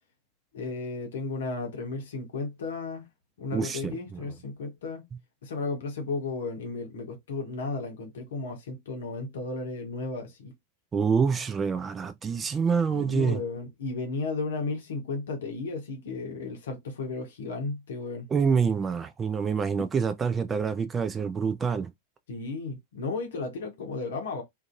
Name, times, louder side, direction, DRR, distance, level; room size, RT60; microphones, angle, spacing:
voice 1, 0.5-3.0 3.4-5.0 5.4-10.5 12.9-18.2 22.3-24.4, left 3 dB, 60° left, 0.8 m, -34 dB
voice 2, 3.5-4.2 10.9-13.4 18.3-21.9, right 6 dB, 20° right, 0.3 m, -26 dB
2.6 x 2.5 x 2.4 m
figure-of-eight pair, 90°, 0 cm